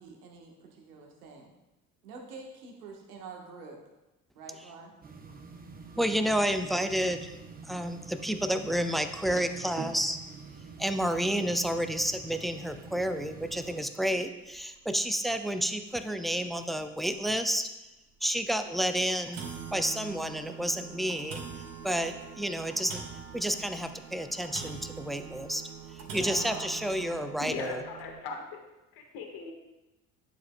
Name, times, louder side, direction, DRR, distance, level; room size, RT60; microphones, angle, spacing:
voice 1, 0.0-1.5 2.0-3.8 4.3-4.9 26.1-26.7 27.0-27.4, right 4 dB, 80° right, 1 dB, 1.3 m, -46 dB
sound 1, 5.0-13.9, right 4 dB, 20° right, 0.8 m, -46 dB
voice 2, 6.0-7.4 7.7-10.2 10.8-17.7 18.2-19.4 19.7-23.0 23.3-25.6 25.9-27.8, equal, ahead, 8 dB, 0.4 m, -30 dB
sound 2, 13.0-13.2 13.6-13.7 14.1-14.2 15.3-15.4 15.9-16.0 16.5-16.6 17.1-17.2 18.2-18.4 18.8-18.9 19.1-28.2, right 7 dB, 50° right, 1.7 m, -44 dB
voice 3, 27.4-28.6 28.9-29.5, left 4 dB, 55° left, 3 dB, 1.5 m, -38 dB
10.5 x 7.0 x 2.2 m, 1.0 s
hypercardioid pair, 60°, 44 cm